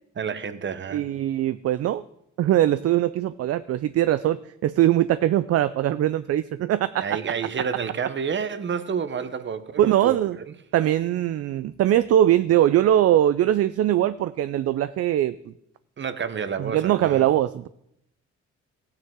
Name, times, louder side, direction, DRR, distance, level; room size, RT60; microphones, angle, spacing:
voice 1, 0.2-1.1 7.0-10.2 16.0-17.3, right 6 dB, 40° right, 0.9 m, -29 dB
voice 2, 0.9-2.0 2.4-7.1 9.8-10.4 10.7-15.4 16.6-17.7, right 12 dB, 55° right, 0.4 m, -21 dB
15.0 x 9.3 x 3.7 m
cardioid pair, 90°, 30 cm